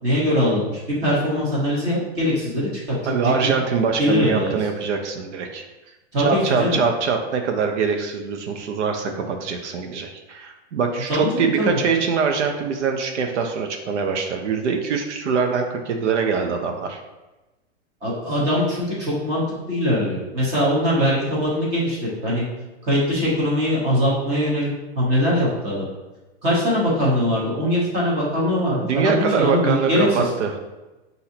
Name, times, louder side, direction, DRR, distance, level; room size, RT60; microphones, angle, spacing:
voice 1, 0.0-3.6 4.0-4.6 6.1-6.8 11.1-11.8 18.0-22.4 22.8-24.7 24.9-25.9 26.4-30.3, equal, 20° right, -6 dB, 1.0 m, -22 dB
voice 2, 3.1-5.7 6.2-17.0 28.7-30.5, right 5 dB, 85° right, 4 dB, 0.7 m, -23 dB
5.7 x 2.7 x 2.7 m, 1.1 s
supercardioid pair, 170°, 34 cm